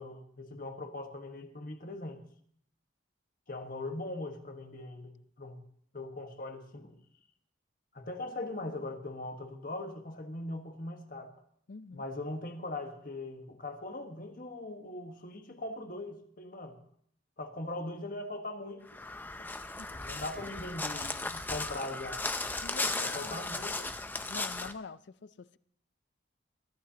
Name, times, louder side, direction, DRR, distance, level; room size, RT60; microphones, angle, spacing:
voice 1, 0.0-2.2 3.5-5.6 5.9-7.0 7.9-11.3 11.9-16.8 17.4-19.1 19.4-19.5 19.9-22.2 23.0-23.8, left 2 dB, 45° left, 1.4 m, -40 dB
voice 2, 11.7-12.0 19.8-20.1 22.6-23.9 24.3-25.6, left 4 dB, 60° left, 0.5 m, -46 dB
Crow, 18.9-24.7, left 3 dB, 10° left, 0.5 m, -36 dB
22.5 x 14.5 x 2.9 m
head